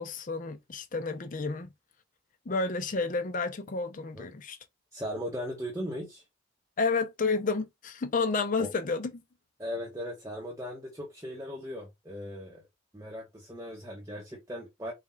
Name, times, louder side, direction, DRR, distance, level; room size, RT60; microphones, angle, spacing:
voice 1, 0.0-1.7 2.5-4.6 6.8-9.1, left 4 dB, 40° left, 0.5 m, -30 dB
voice 2, 4.9-6.2 8.6-8.7 9.6-12.6 12.9-14.9, equal, 15° right, 0.9 m, -38 dB
4.2 x 2.3 x 3.8 m
head